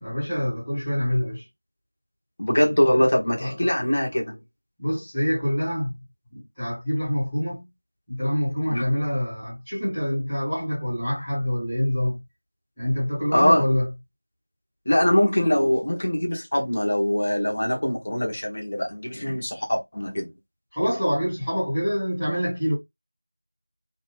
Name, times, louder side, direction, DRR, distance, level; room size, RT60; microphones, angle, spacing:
voice 1, 0.0-1.5 3.4-3.5 4.8-5.9 6.3-7.6 8.1-12.2 12.8-13.9 20.7-22.7, equal, 5° left, 0.9 m, -26 dB
voice 2, 2.4-4.4 8.7-8.8 13.3-13.6 14.9-20.3, left 1 dB, 25° left, 0.7 m, -22 dB
2.6 x 2.1 x 3.0 m
figure-of-eight pair, 180°, 0 cm